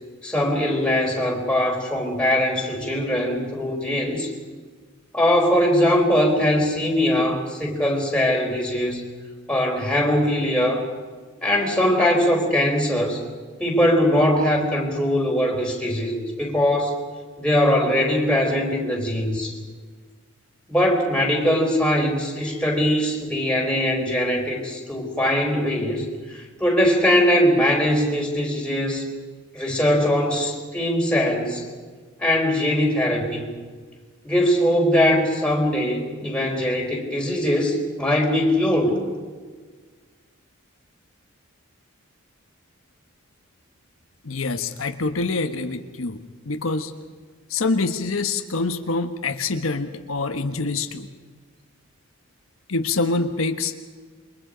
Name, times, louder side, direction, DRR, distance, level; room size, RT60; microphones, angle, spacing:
voice 1, 0.2-4.3 5.1-9.0 9.5-10.8 11.4-13.2 13.6-16.9 17.4-19.6 20.7-29.0 29.5-31.6 32.2-33.4 34.2-39.0, left 1 dB, 5° left, -1 dB, 4.2 m, -21 dB
voice 2, 44.2-46.2 46.4-46.9 47.5-51.1 52.7-53.8, left 3 dB, 85° left, 6 dB, 1.3 m, -25 dB
28.0 x 23.5 x 5.2 m, 1.5 s
head